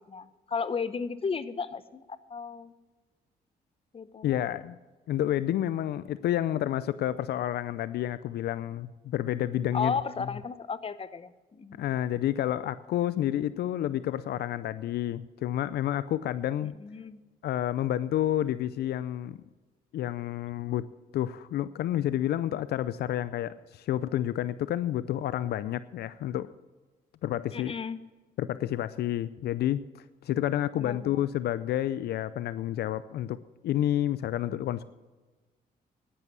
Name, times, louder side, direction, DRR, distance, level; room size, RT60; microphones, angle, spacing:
voice 1, 0.1-2.0 2.3-2.7 3.9-4.4 9.7-11.8 16.8-17.2 27.5-28.0 30.8-31.2, left 5 dB, 35° left, 15 dB, 0.9 m, -34 dB
voice 2, 4.2-4.8 5.1-10.0 11.8-16.7 17.4-19.4 19.9-20.9 21.1-26.5 27.2-27.7 28.4-34.8, left 12 dB, 75° left, 16 dB, 0.5 m, -30 dB
11.0 x 11.0 x 6.2 m, 1.2 s
cardioid pair, 70°, 17 cm